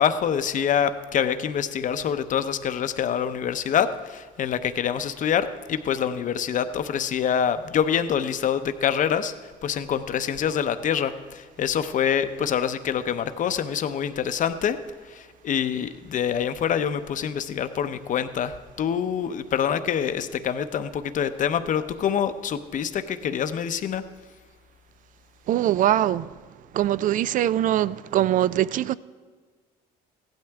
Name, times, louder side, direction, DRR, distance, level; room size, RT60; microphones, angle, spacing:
voice 1, 0.0-9.3 9.6-14.8 15.1-24.0, left 8 dB, 50° left, 0.7 m, -26 dB
voice 2, 25.5-26.3 26.7-28.9, right 12 dB, 50° right, 0.4 m, -22 dB
15.5 x 11.5 x 3.5 m
cardioid pair, 110°, 17 cm